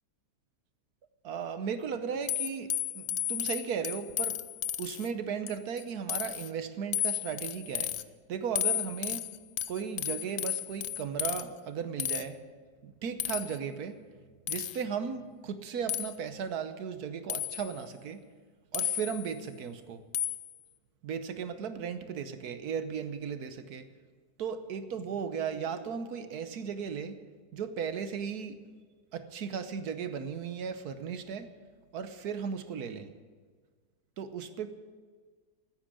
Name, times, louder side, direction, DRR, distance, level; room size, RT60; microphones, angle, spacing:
voice 1, 1.2-4.4 4.8-7.9 8.3-9.3 9.7-12.5 12.8-14.0 14.5-18.2 18.7-20.0 21.0-23.9 24.4-27.2 27.5-28.6 29.1-31.5 31.9-33.1 34.2-34.7, right 7 dB, 75° right, 10 dB, 1.4 m, -36 dB
sound 1, 2.3-5.1 5.5-5.8 6.1-6.5 6.9-8.0 8.6-11.4 12.0-12.2 13.2-13.6 14.5-14.8 15.9-16.1 17.3-17.7 18.7-19.3 20.1-20.5, left 11 dB, 65° left, 0.8 m, -33 dB
15.5 x 9.1 x 8.4 m, 1.6 s
omnidirectional pair, 1.7 m